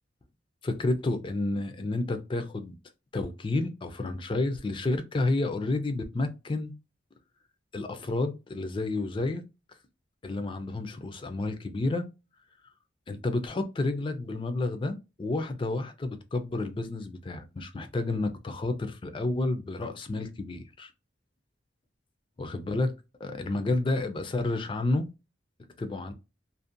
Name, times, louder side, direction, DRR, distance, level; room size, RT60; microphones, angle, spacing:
voice 1, 0.6-2.8 3.1-6.7 7.7-9.4 10.2-12.1 13.1-20.9 22.4-22.9 23.2-25.1 25.8-26.1, left 2 dB, 25° left, 0.4 m, -30 dB
2.6 x 2.1 x 2.4 m
head